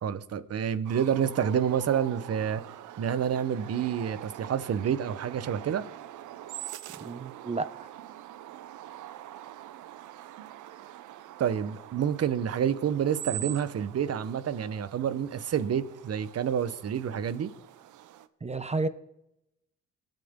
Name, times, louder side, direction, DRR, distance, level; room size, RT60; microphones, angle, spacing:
voice 1, 0.0-2.6 3.0-5.8 11.4-17.5, right 8 dB, 55° right, 1.1 m, -28 dB
sound 1, 0.8-18.3, right 13 dB, 85° right, 0.8 m, -44 dB
voice 2, 7.0-7.9 18.4-18.9, right 3 dB, 20° right, 0.9 m, -31 dB
22.5 x 9.2 x 3.8 m
cardioid pair, 90°, 30 cm